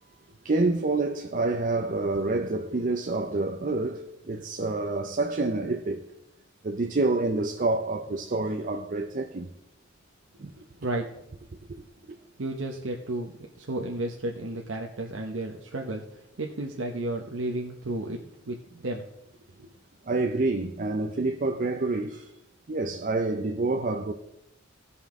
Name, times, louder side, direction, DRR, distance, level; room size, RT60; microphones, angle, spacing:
voice 1, 0.4-6.0 6.6-9.5 10.4-10.5 20.1-22.3 22.7-24.1, right 2 dB, 45° right, 0.5 m, -27 dB
voice 2, 10.6-11.1 12.4-19.1 19.6-19.7, right 2 dB, 80° right, 0.9 m, -33 dB
16.5 x 5.6 x 3.6 m
head